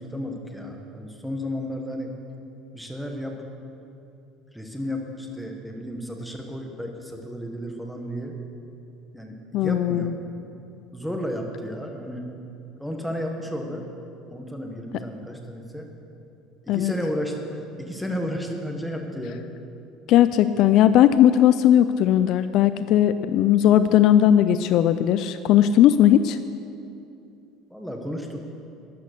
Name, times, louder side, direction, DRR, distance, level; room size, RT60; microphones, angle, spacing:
voice 1, 0.0-2.1 2.7-3.4 4.5-8.3 9.1-10.2 10.9-12.3 12.8-13.9 14.3-15.9 16.6-19.4 27.7-28.4, equal, ahead, 1 dB, 1.4 m, -32 dB
voice 2, 9.5-10.1 16.7-16.9 20.1-26.4, left 11 dB, 55° left, 12 dB, 0.4 m, -18 dB
13.0 x 10.5 x 6.7 m, 2.7 s
cardioid pair, 150°, 0 cm